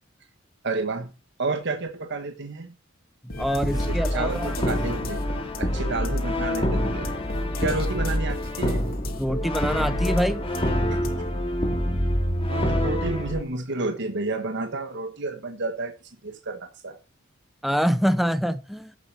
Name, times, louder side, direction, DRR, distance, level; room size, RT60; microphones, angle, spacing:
voice 1, 0.6-1.1 1.4-2.7 3.7-5.2 5.6-7.1 7.6-8.8 10.9-11.1 12.5-16.0 16.2-17.0, right 3 dB, 60° right, 1.4 m, -30 dB
sound 1, 3.3-11.3, left 1 dB, 50° left, 2.6 m, -37 dB
voice 2, 3.4-4.5 9.2-10.5 17.6-18.9, equal, ahead, 0.6 m, -25 dB
Brass instrument, 3.6-13.4, equal, 25° left, 2.3 m, -26 dB
11.0 x 8.1 x 6.1 m
head